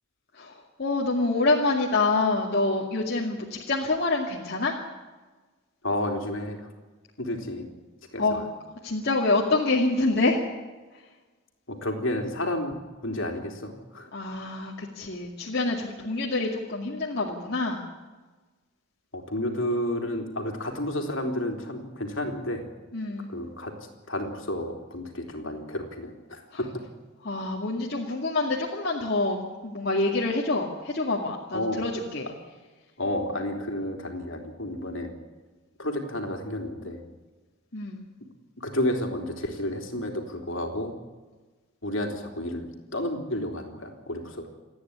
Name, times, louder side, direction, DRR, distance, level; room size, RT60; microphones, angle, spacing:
voice 1, 0.3-4.8 8.2-8.4 8.8-10.4 14.1-17.8 22.9-23.3 26.5-26.6 27.2-32.3 37.7-38.0, left 2 dB, 50° left, -2 dB, 2.3 m, -26 dB
voice 2, 5.8-6.7 7.2-7.7 8.1-8.5 11.7-14.1 19.1-22.7 23.3-23.7 24.1-26.7 31.5-31.8 33.0-35.1 35.8-37.0 38.6-40.9 41.8-44.5, left 1 dB, 70° left, 3 dB, 3.5 m, -31 dB
28.5 x 9.9 x 9.9 m, 1.3 s
head